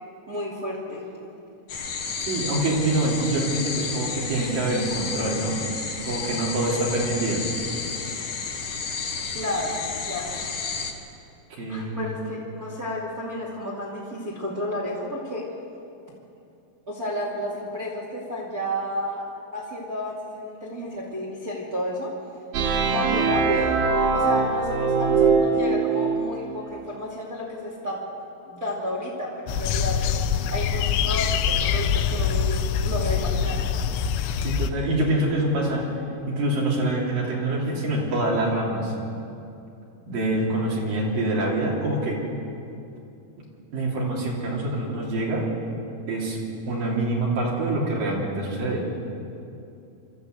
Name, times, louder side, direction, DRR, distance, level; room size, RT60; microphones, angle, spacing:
voice 1, 0.3-1.1 9.3-10.4 11.7-15.5 16.9-22.1 22.9-23.8 24.1-28.0 28.4-30.0 30.5-33.6, left 1 dB, 25° right, -4 dB, 2.1 m, -31 dB
sound 1, 1.7-10.9, left 5 dB, 70° left, 1.4 m, -32 dB
voice 2, 2.3-5.6 6.0-7.5 11.6-12.1 34.4-35.9 36.3-38.9 40.1-42.2 43.4-43.5 43.7-45.5 46.1-46.4 46.7-48.9, right 1 dB, 50° right, -3 dB, 4.5 m, -25 dB
sound 2, 22.5-26.3, right 4 dB, 80° right, 3.7 m, -22 dB
sound 3, 29.5-34.7, left 7 dB, 90° left, 3.3 m, -24 dB
24.5 x 13.5 x 8.1 m, 2.7 s
omnidirectional pair, 5.4 m